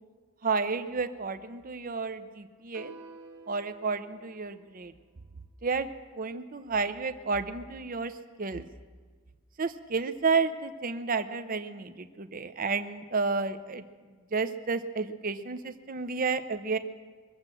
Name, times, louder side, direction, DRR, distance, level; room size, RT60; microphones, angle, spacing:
voice 1, 0.4-2.9 3.5-4.9 5.6-5.9 6.2-8.1 8.4-8.7 9.6-13.8 14.3-16.8, right 4 dB, 40° right, 10 dB, 0.6 m, -31 dB
sound 1, 2.7-5.1, right 2 dB, 90° right, 1.3 m, -50 dB
22.5 x 7.6 x 7.6 m, 1.5 s
head